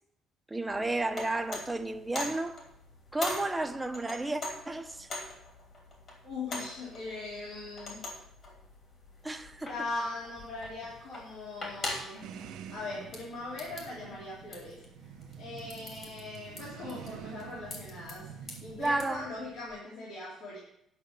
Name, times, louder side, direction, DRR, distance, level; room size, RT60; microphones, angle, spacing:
voice 1, 0.5-2.6 3.1-5.1 9.2-9.7 18.8-19.3, right 2 dB, 10° right, 0.7 m, -32 dB
sound 1, 0.7-19.1, left 2 dB, 45° left, 3.0 m, -44 dB
voice 2, 6.2-8.0 9.7-12.3 12.7-14.8 15.4-20.6, left 2 dB, 75° left, 3.4 m, -40 dB
sound 2, 12.2-19.8, right 8 dB, 75° right, 0.7 m, -47 dB
10.5 x 5.7 x 6.5 m
cardioid pair, 135°, 0 cm